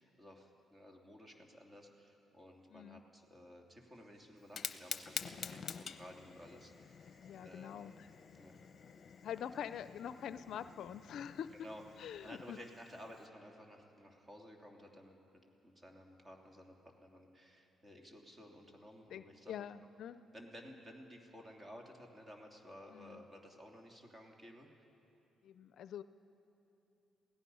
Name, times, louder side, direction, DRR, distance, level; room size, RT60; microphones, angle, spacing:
voice 1, 0.0-7.8 8.3-8.5 11.5-15.2 15.6-19.7 20.3-24.7, equal, 20° right, 1 dB, 2.9 m, -55 dB
voice 2, 2.7-3.0 7.2-8.1 9.2-11.5 12.0-12.6 19.1-20.2 22.9-23.2 25.4-26.0, left 9 dB, 70° left, 13 dB, 0.5 m, -45 dB
Cricket / Thunder, 3.9-13.0, right 1 dB, 40° right, 3.2 m, -73 dB
Fire, 4.4-13.3, left 7 dB, 50° left, 0.9 m, -48 dB
28.0 x 17.5 x 5.5 m, 2.9 s
cardioid pair, 90°, 0 cm